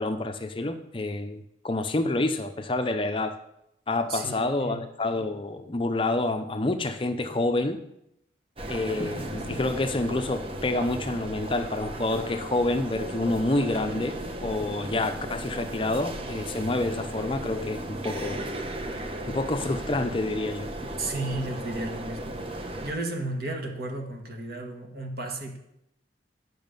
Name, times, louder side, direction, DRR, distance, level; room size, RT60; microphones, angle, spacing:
voice 1, 0.0-3.4 3.9-7.8 8.7-18.4 19.3-20.7, left 2 dB, 30° left, 8 dB, 0.6 m, -28 dB
voice 2, 4.1-4.8 9.5-9.6 21.0-25.6, right 2 dB, 55° right, 2 dB, 1.7 m, -34 dB
sound 1, 8.6-22.9, right 1 dB, 30° right, 0.9 m, -36 dB
11.0 x 6.3 x 5.3 m, 0.80 s
head